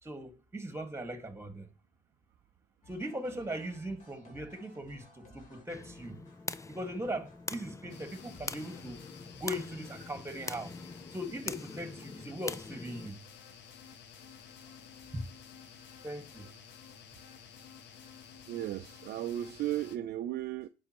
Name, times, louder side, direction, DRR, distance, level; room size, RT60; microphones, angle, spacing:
voice 1, 0.0-1.7 2.9-6.2 6.7-9.0 9.3-10.7 11.1-13.2 15.1-15.3 16.0-16.5, equal, 10° right, 1.8 m, -39 dB
sound 1, 2.8-9.7, left 2 dB, 40° left, 2.9 m, -59 dB
sound 2, 5.7-13.1, left 3 dB, 15° left, 0.5 m, -43 dB
sound 3, 7.9-20.0, left 7 dB, 60° left, 1.0 m, -52 dB
voice 2, 18.5-20.7, right 13 dB, 55° right, 0.5 m, -35 dB
9.7 x 5.5 x 3.0 m
hypercardioid pair, 70°, 21 cm